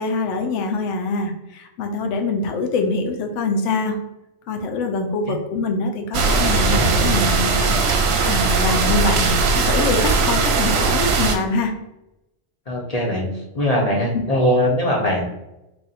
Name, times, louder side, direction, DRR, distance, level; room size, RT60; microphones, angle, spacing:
voice 1, 0.0-4.0 4.5-8.0 8.2-11.7 14.1-14.2, left 3 dB, 80° left, 4 dB, 0.9 m, -24 dB
sound 1, 6.1-11.4, right 4 dB, 65° right, 0.8 m, -19 dB
voice 2, 12.7-15.2, equal, 40° left, -1 dB, 0.6 m, -21 dB
3.4 x 2.3 x 3.9 m, 0.92 s
omnidirectional pair, 1.2 m